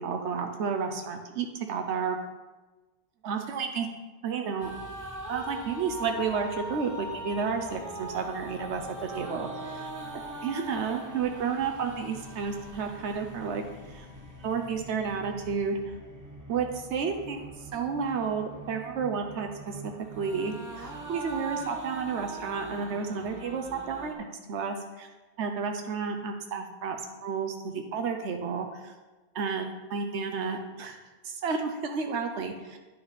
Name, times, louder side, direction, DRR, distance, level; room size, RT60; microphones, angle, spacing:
voice 1, 0.0-2.2 3.2-3.9 4.2-4.7 5.3-9.9 10.1-13.6 13.9-14.1 14.4-15.7 16.5-19.8 20.2-25.1 25.4-28.9 29.3-31.0 31.2-32.8, right 5 dB, 85° right, 4 dB, 1.0 m, -31 dB
sound 1, 4.6-24.1, right 1 dB, 20° right, 0.8 m, -41 dB
9.9 x 5.7 x 4.1 m, 1.2 s
omnidirectional pair, 1.1 m